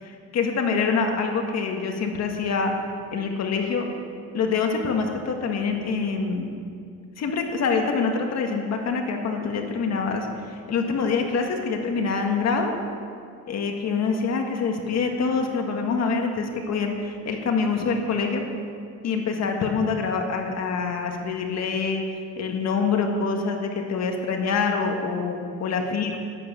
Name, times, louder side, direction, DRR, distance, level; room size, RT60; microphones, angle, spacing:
voice 1, 0.0-2.7 3.1-3.9 4.3-6.5 7.2-12.7 13.5-18.4 19.0-26.2, left 5 dB, 55° left, 3 dB, 1.7 m, -25 dB
11.5 x 10.5 x 8.7 m, 2.3 s
cardioid pair, 150°, 33 cm